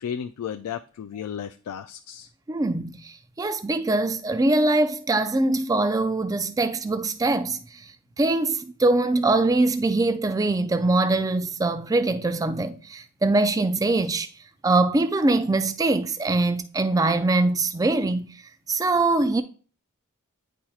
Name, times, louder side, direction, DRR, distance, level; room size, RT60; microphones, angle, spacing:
voice 1, 0.0-2.3, left 8 dB, 85° left, 0.3 m, -34 dB
voice 2, 2.5-7.9 8.2-14.3 14.6-18.3 18.7-19.4, right 2 dB, 15° right, 0.3 m, -23 dB
9.9 x 4.4 x 2.3 m
head